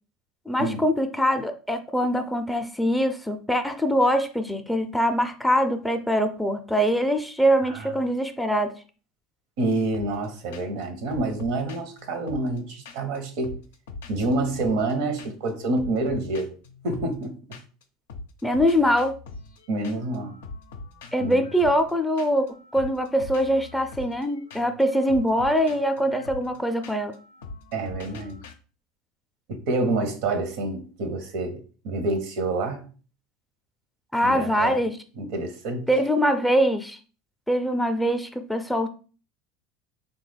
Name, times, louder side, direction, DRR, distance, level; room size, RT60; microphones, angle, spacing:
voice 1, 0.5-8.7 18.4-19.1 21.1-22.5 22.7-27.1 34.1-35.0 35.9-37.0 37.5-38.9, equal, 5° left, 0.4 m, -23 dB
voice 2, 9.6-13.6 14.1-16.5 16.8-17.4 19.7-20.4 21.2-21.4 27.7-28.4 29.5-32.9 34.2-34.8 35.2-35.9, right 2 dB, 65° right, 0.7 m, -27 dB
sound 1, 9.9-10.3 10.5-10.8 11.1-13.2 13.4-14.9 15.2-15.5 15.8-17.8 18.1-28.5, left 3 dB, 80° left, 0.4 m, -42 dB
3.5 x 2.2 x 3.3 m
hypercardioid pair, 80°, 0 cm